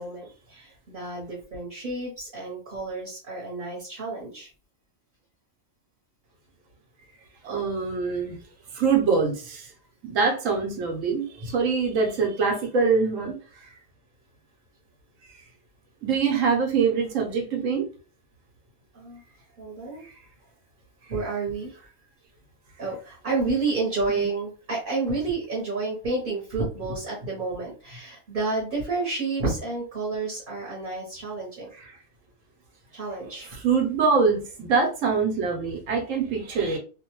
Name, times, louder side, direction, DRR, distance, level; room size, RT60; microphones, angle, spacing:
voice 1, 0.0-4.5 18.9-19.2 19.6-20.0 21.1-21.8 22.8-31.7 32.9-33.5, right 3 dB, 45° right, 1.0 m, -30 dB
voice 2, 7.4-8.4 8.7-9.7 10.0-13.7 16.0-17.9 20.0-20.1 24.1-24.2 31.8-31.9 33.5-36.8, right 5 dB, 85° right, 1.1 m, -24 dB
2.6 x 2.1 x 2.9 m
omnidirectional pair, 1.3 m